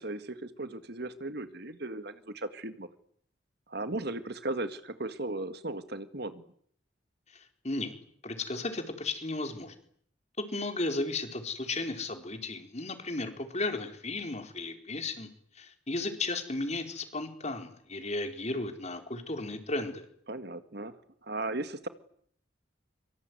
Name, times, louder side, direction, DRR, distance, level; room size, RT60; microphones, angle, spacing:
voice 1, 0.0-2.9 3.7-6.5 20.3-21.0 21.2-21.9, right 2 dB, 55° right, 12 dB, 1.9 m, -36 dB
voice 2, 7.3-7.9 8.2-9.7 10.5-15.3 15.5-20.0, left 2 dB, 35° left, 7 dB, 4.4 m, -34 dB
25.0 x 24.5 x 9.6 m, 0.63 s
head